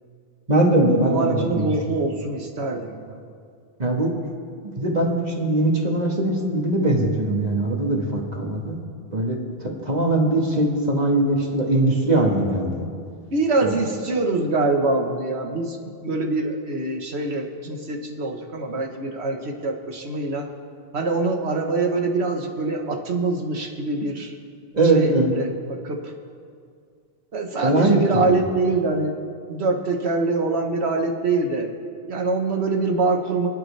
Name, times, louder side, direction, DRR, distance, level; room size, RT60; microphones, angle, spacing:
voice 1, 0.5-2.0 3.8-4.3 4.6-8.8 9.1-12.9 13.6-13.7 24.7-25.3 27.6-28.4, right 2 dB, 40° right, 0 dB, 1.8 m, -21 dB
voice 2, 1.0-3.2 13.3-20.5 20.9-24.4 24.9-26.1 27.3-29.2 29.5-31.7 32.1-33.5, right 3 dB, 85° right, 2 dB, 1.6 m, -24 dB
28.5 x 9.6 x 3.4 m, 2.3 s
omnidirectional pair, 1.1 m